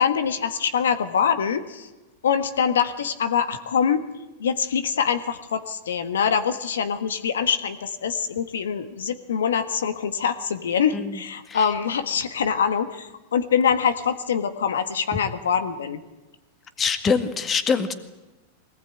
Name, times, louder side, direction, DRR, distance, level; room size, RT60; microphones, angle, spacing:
voice 1, 0.0-1.9 2.2-4.0 4.4-16.0, left 7 dB, 85° left, 9 dB, 1.4 m, -24 dB
voice 2, 16.8-17.9, left 5 dB, 25° left, 9 dB, 2.0 m, -23 dB
21.5 x 19.0 x 9.1 m, 1.1 s
hypercardioid pair, 105°, 0 cm